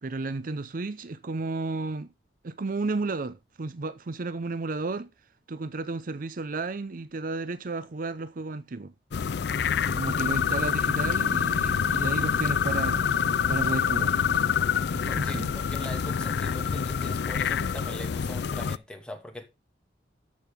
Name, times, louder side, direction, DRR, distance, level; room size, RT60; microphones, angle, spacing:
voice 1, 0.0-2.1 2.4-5.1 5.5-8.9 9.8-13.0 13.5-14.2 15.0-15.5, right 3 dB, 50° right, 0.6 m, -32 dB
sound 1, 9.1-18.8, left 7 dB, 65° left, 0.4 m, -26 dB
voice 2, 15.1-19.5, left 1 dB, 5° left, 2.4 m, -41 dB
13.5 x 6.5 x 3.6 m
head